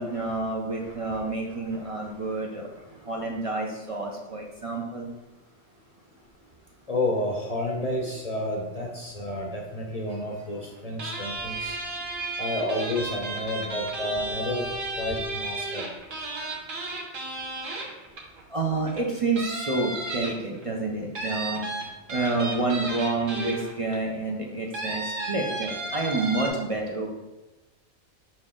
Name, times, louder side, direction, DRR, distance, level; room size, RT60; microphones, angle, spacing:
voice 1, 0.0-2.7 3.0-5.1 18.5-21.6 22.1-27.1, right 3 dB, 40° right, 0 dB, 0.5 m, -29 dB
voice 2, 0.8-1.2 1.7-2.0 6.9-11.8 12.4-14.7 15.0-15.9, left 1 dB, 40° left, 0 dB, 0.6 m, -30 dB
sound 1, 11.0-18.4 18.9-19.0 19.4-20.6 21.1-23.9 24.7-26.5, right 2 dB, 75° right, 1.5 m, -33 dB
6.0 x 4.3 x 3.7 m, 1.1 s
omnidirectional pair, 1.3 m